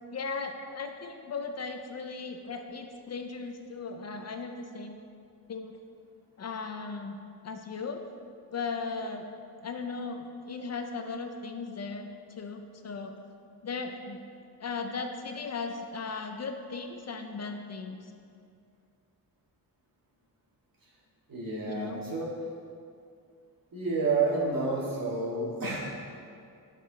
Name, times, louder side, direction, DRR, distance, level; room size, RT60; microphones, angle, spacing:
voice 1, 0.1-5.0 5.5-5.8 6.4-7.1 7.4-8.0 8.5-9.3 9.6-13.2 13.6-14.2 14.6-18.1 21.7-22.0, left 4 dB, 45° left, 5 dB, 0.4 m, -37 dB
voice 2, 21.3-22.3 23.7-25.9, right 3 dB, 60° right, -5 dB, 1.7 m, -29 dB
8.2 x 4.6 x 3.8 m, 2.4 s
wide cardioid pair, 120°, 39 cm